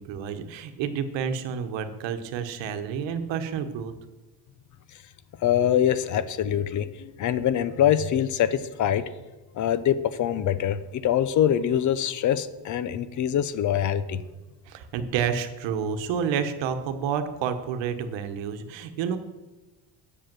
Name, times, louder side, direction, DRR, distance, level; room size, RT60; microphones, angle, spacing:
voice 1, 0.0-3.9 14.7-19.2, right 7 dB, 85° right, 8 dB, 1.1 m, -29 dB
voice 2, 5.4-9.0 9.5-14.2, left 10 dB, 45° left, 15 dB, 0.6 m, -24 dB
7.9 x 6.6 x 7.4 m, 1.1 s
cardioid pair, 160°, 43 cm